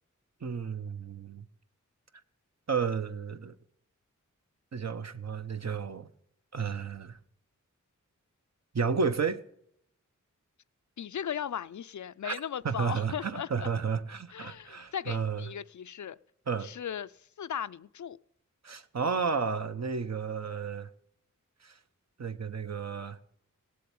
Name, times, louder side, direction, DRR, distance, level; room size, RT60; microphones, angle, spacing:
voice 1, 0.4-1.4 2.7-3.5 4.7-6.1 6.5-7.2 8.7-9.4 12.2-12.4 12.6-15.4 16.5-16.7 18.6-20.9 21.6-21.7 22.2-23.2, right 5 dB, 55° right, 1.0 m, -32 dB
voice 2, 11.0-13.7 14.3-16.2 16.6-18.2, left 8 dB, 65° left, 0.5 m, -37 dB
17.0 x 7.7 x 8.5 m
wide cardioid pair, 55°, 31 cm